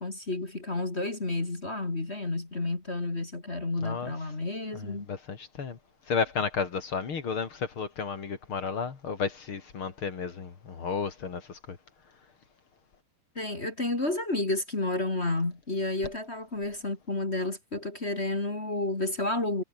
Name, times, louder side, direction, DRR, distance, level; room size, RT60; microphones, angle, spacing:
voice 1, 0.0-5.1 13.3-19.6, left 2 dB, 20° left, 2.3 m, -31 dB
voice 2, 3.8-4.1 4.7-5.8 6.1-11.8, left 5 dB, 40° left, 2.8 m, -33 dB
omnidirectional pair, 4.1 m